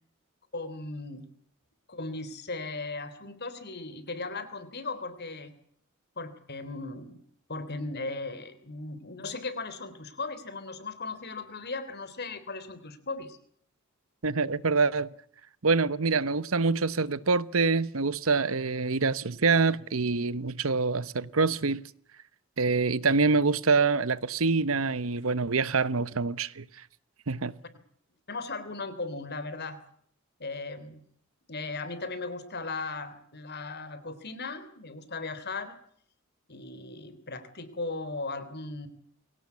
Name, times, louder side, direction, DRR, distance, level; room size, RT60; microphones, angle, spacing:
voice 1, 0.5-1.3 1.9-5.5 6.1-7.2 7.5-13.4 28.3-29.8 30.4-31.0 31.5-35.8 36.5-38.9, left 3 dB, 55° left, 3.4 m, -37 dB
voice 2, 14.2-15.1 15.6-21.8 22.6-26.7 27.3-27.5, right 4 dB, 85° right, 1.0 m, -25 dB
23.5 x 17.5 x 8.4 m
head